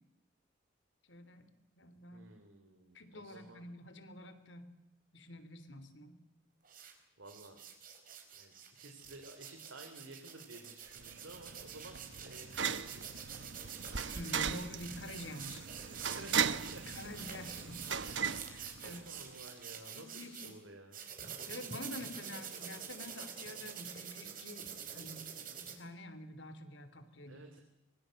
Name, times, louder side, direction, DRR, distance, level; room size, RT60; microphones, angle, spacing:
voice 1, 1.1-1.4 1.8-2.3 2.9-4.7 5.1-6.2 14.1-15.7 16.9-17.9 18.4-19.0 19.9-20.6 21.5-27.6, left 1 dB, 70° left, 11 dB, 3.3 m, -48 dB
voice 2, 2.1-3.6 7.2-7.6 8.3-13.1 16.1-16.8 17.1-17.3 18.8-21.0 27.3-27.6, right 2 dB, 90° right, 4 dB, 3.3 m, -53 dB
sound 1, 6.7-6.9 7.3-20.5 20.9-25.7, right 7 dB, 45° right, 4.6 m, -47 dB
sound 2, 11.0-19.3, right 7 dB, 70° right, 1.1 m, -38 dB
24.0 x 23.5 x 7.8 m, 0.94 s
head